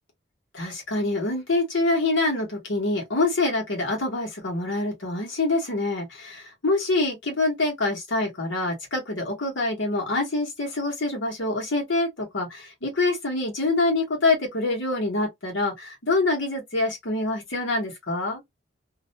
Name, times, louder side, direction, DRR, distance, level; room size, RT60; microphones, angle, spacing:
voice 1, 0.5-18.4, left 2 dB, 65° left, 1.1 m, -25 dB
2.5 x 2.1 x 2.6 m
head